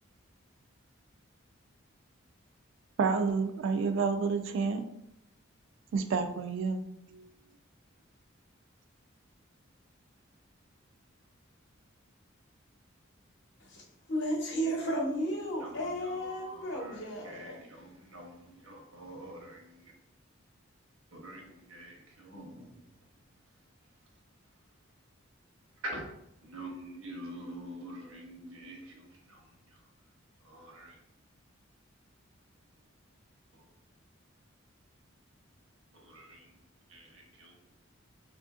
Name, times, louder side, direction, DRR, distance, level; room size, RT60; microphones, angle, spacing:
voice 1, 3.0-4.8 5.9-6.8 7.1-7.3, right 5 dB, 65° right, 0.3 m, -29 dB
voice 2, 14.1-17.6, equal, 60° left, 0.8 m, -33 dB
voice 3, 16.0-19.9 21.1-22.7 25.8-26.0 26.4-29.4 30.4-31.0 36.0-36.4 36.9-37.5, right 1 dB, 85° right, 0.9 m, -46 dB
3.4 x 2.5 x 2.4 m
head